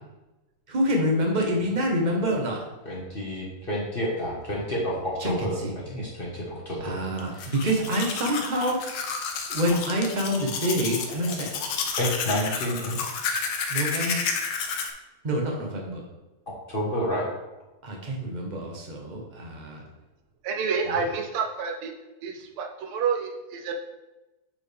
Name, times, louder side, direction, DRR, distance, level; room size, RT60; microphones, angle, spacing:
voice 1, 0.7-2.6 5.2-5.7 6.8-9.0 9.5-11.5 13.7-14.2 15.2-16.0 17.8-19.8, equal, 30° right, 0 dB, 1.0 m, -27 dB
voice 2, 2.8-7.0 7.3-7.4 12.0-13.0 16.7-17.3 20.9-21.0, equal, 30° left, -6 dB, 1.4 m, -29 dB
Domestic sounds home sounds, 7.2-14.9, left 5 dB, 75° left, 1.6 m, -31 dB
voice 3, 20.4-21.9 22.2-23.7, right 5 dB, 80° right, 3 dB, 1.7 m, -28 dB
8.8 x 4.8 x 3.4 m, 1.0 s
omnidirectional pair, 2.4 m